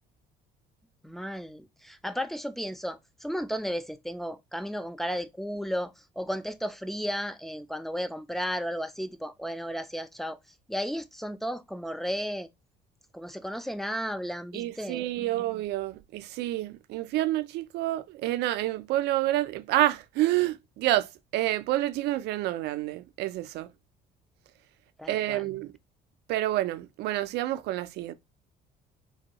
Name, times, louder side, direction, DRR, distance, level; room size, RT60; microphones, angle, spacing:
voice 1, 1.0-10.4 10.7-12.5 13.1-15.3 25.0-25.5, equal, ahead, 0.3 m, -34 dB
voice 2, 14.5-23.7 25.1-25.7 26.3-28.1, right 15 dB, 80° right, 0.4 m, -28 dB
3.4 x 2.2 x 2.8 m
cardioid pair, 110°, 17 cm